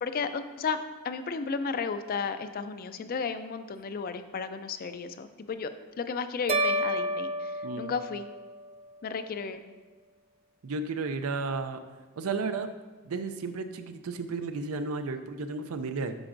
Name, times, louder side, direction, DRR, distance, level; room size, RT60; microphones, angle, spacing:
voice 1, 0.0-0.8 1.0-5.7 6.0-8.3 9.0-9.6, left 5 dB, 45° left, 10 dB, 0.4 m, -33 dB
sound 1, 6.5-8.8, right 1 dB, 30° right, 0.4 m, -30 dB
voice 2, 7.6-7.9 10.6-11.8 12.2-12.7 13.0-16.2, right 4 dB, 90° right, 8 dB, 0.5 m, -33 dB
8.8 x 6.1 x 2.5 m, 1.3 s
head